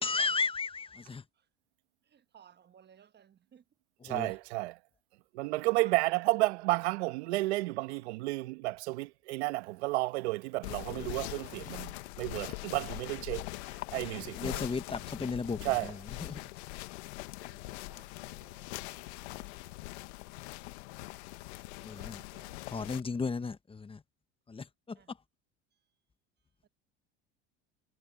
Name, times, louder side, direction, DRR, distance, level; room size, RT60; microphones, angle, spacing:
voice 1, 0.0-1.2 4.0-4.3 14.1-15.9 16.2-16.4 21.8-22.2 22.7-24.0 24.5-25.0, left 4 dB, 15° left, 1.2 m, -35 dB
voice 2, 2.3-3.2 3.5-3.6 17.9-18.0 19.4-19.5 22.0-22.5, right 8 dB, 30° right, 1.2 m, -58 dB
voice 3, 4.0-4.8 5.3-13.5 13.9-14.6 15.6-15.9, right 21 dB, 85° right, 1.2 m, -32 dB
sound 1, 10.6-23.0, left 22 dB, 80° left, 1.5 m, -42 dB
supercardioid pair, 95°, 33 cm